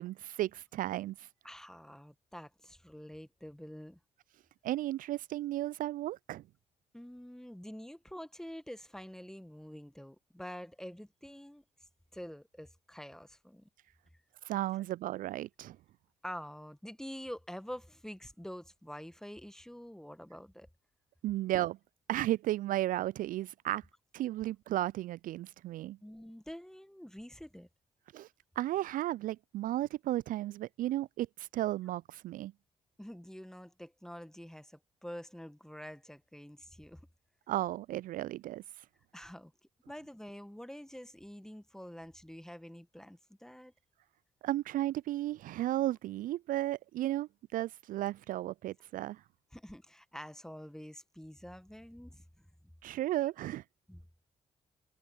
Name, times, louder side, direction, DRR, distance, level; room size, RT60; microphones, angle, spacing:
voice 1, 0.0-1.3 4.6-6.4 14.4-15.8 21.2-21.8 22.1-23.8 24.1-26.0 28.1-28.3 28.6-32.5 37.5-38.6 44.4-49.2 52.8-53.6, right 14 dB, 60° right, 0.4 m, -34 dB
voice 2, 1.4-4.0 6.9-11.6 12.1-13.7 16.2-20.7 26.0-27.7 33.0-37.1 39.1-39.5 39.9-43.7 49.5-52.4 53.9-54.0, equal, 5° left, 1.6 m, -47 dB
hypercardioid pair, 40°, 16 cm